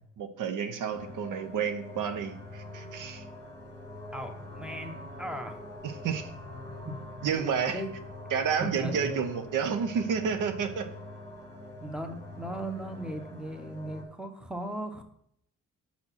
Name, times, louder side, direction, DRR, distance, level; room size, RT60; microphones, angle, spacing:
voice 1, 0.2-3.2 5.8-6.3 7.2-7.8 8.3-10.9, right 7 dB, 85° right, 9 dB, 0.8 m, -30 dB
sound 1, 0.9-14.0, left 1 dB, 15° left, 2.2 m, -44 dB
voice 2, 4.1-5.6 6.8-7.0 7.4-7.9 8.6-9.2 11.8-15.0, right 1 dB, 5° right, 6 dB, 0.9 m, -37 dB
6.2 x 5.9 x 5.7 m, 0.73 s
cardioid pair, 105°, 31 cm